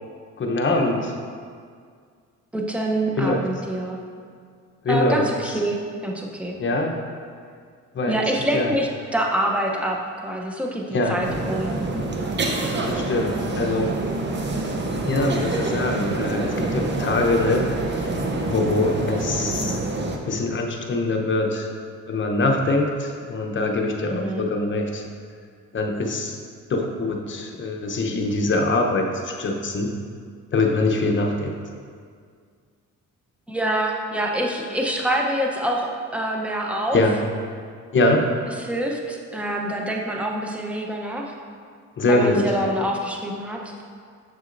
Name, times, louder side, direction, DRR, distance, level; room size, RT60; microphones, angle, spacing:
voice 1, 0.4-1.1 3.2-3.4 4.8-5.2 6.6-7.0 7.9-8.2 8.5-8.7 10.9-11.2 12.8-13.9 15.0-17.7 18.0-18.1 18.4-19.9 20.2-21.7 22.1-25.0 25.7-26.3 26.7-29.9 30.5-31.5 36.9-37.2 37.9-38.3 42.0-42.5, left 2 dB, 40° left, 2 dB, 0.8 m, -23 dB
voice 2, 2.5-4.0 4.9-5.8 6.0-6.6 8.1-11.7 24.0-24.5 33.5-37.0 38.6-41.3 42.1-43.7, right 1 dB, 5° right, 0 dB, 0.8 m, -26 dB
sound 1, 11.2-20.2, right 2 dB, 35° right, 0.7 m, -26 dB
7.5 x 6.2 x 2.6 m, 2.1 s
cardioid pair, 90°, 30 cm